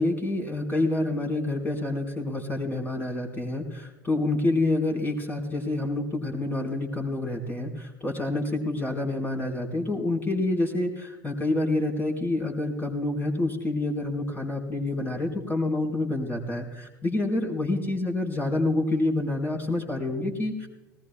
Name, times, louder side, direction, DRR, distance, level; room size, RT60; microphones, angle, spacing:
voice 1, 0.0-20.7, left 2 dB, 15° left, 1 dB, 4.2 m, -27 dB
19.5 x 19.0 x 2.2 m, 1.1 s
figure-of-eight pair, 80°, 11 cm